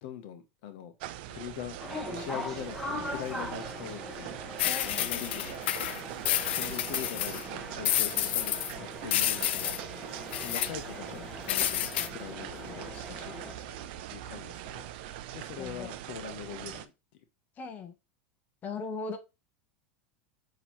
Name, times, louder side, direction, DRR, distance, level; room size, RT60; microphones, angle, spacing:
voice 1, 0.0-0.9 1.3-1.8 2.1-5.7 6.5-9.8 10.4-14.9 15.3-16.9, left 9 dB, 65° left, 0.7 m, -42 dB
sound 1, 1.0-16.9, right 12 dB, 65° right, 0.5 m, -42 dB
sound 2, 1.8-13.5, left 1 dB, 5° left, 1.0 m, -42 dB
sound 3, 4.6-7.5 7.9-8.7 9.1-9.8 10.3-10.7 11.5-12.1, left 12 dB, 80° left, 0.4 m, -29 dB
voice 2, 4.7-5.1 15.6-15.9 17.6-17.9 18.6-19.2, left 4 dB, 30° left, 0.8 m, -38 dB
6.0 x 2.8 x 2.9 m
supercardioid pair, 120°, 6 cm